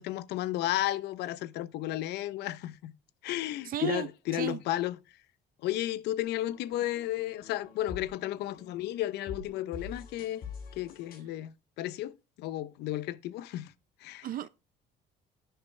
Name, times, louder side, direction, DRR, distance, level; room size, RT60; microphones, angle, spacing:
voice 1, 0.0-2.9 3.2-5.0 5.6-10.4 10.8-13.7 14.0-14.3, left 14 dB, 85° left, 0.8 m, -33 dB
voice 2, 3.6-4.6 14.2-14.5, right 12 dB, 60° right, 0.7 m, -34 dB
sound 1, 6.2-11.2, left 5 dB, 60° left, 7.6 m, -46 dB
10.5 x 10.5 x 3.3 m
cardioid pair, 110°, 17 cm